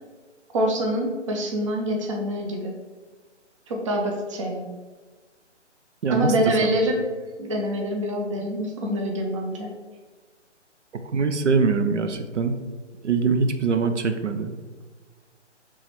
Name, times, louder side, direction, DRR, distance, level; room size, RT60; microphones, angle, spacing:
voice 1, 0.5-2.7 3.7-4.7 6.1-7.0 7.4-9.7, equal, 25° right, 1 dB, 0.5 m, -25 dB
voice 2, 6.0-6.3 6.6-6.8 11.1-12.6 13.0-14.5, right 4 dB, 75° right, 7 dB, 0.6 m, -23 dB
3.6 x 3.0 x 4.4 m, 1.4 s
figure-of-eight pair, 140°, 36 cm